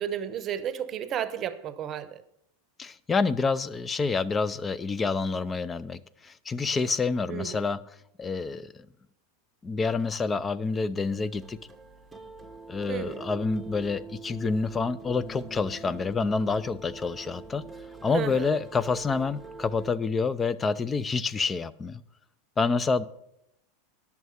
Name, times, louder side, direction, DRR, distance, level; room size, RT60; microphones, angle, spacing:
voice 1, 0.0-2.2 7.3-7.6 12.9-13.2 18.1-18.6, right 9 dB, 35° right, 0.9 m, -32 dB
voice 2, 2.8-7.8 8.2-8.9 9.6-11.6 12.7-17.7 18.0-22.0 22.6-23.1, left 4 dB, 20° left, 0.5 m, -28 dB
sound 1, 11.1-19.9, right 3 dB, 10° right, 1.0 m, -44 dB
10.5 x 7.2 x 6.4 m
hypercardioid pair, 105°, 0 cm